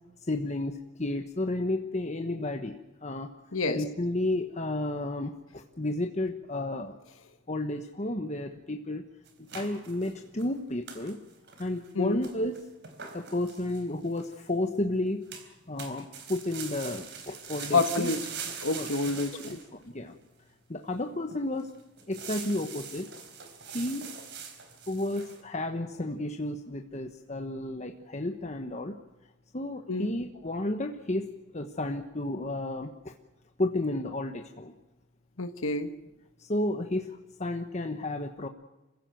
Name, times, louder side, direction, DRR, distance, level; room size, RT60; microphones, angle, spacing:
voice 1, 0.3-3.3 3.7-6.9 7.5-9.0 9.4-11.2 11.6-12.6 13.1-15.3 15.7-18.1 18.7-18.9 19.7-20.2 20.7-21.7 22.1-23.1 23.7-24.0 24.9-29.0 29.5-33.1 33.6-34.7 36.4-38.5, left 1 dB, 35° left, 5 dB, 1.2 m, -32 dB
sound 1, 9.3-10.5 10.9-11.1 11.5-11.9 12.2-14.4 15.3-15.5 15.8-19.7 20.2-20.3 20.9-21.0 21.3-21.6 22.0-25.4, right 6 dB, 55° right, 3.8 m, -42 dB
voice 2, 17.7-18.2 18.6-19.6 29.9-30.1 35.4-35.9, left 3 dB, 80° left, 7 dB, 1.4 m, -28 dB
27.0 x 16.0 x 7.8 m, 1.1 s
head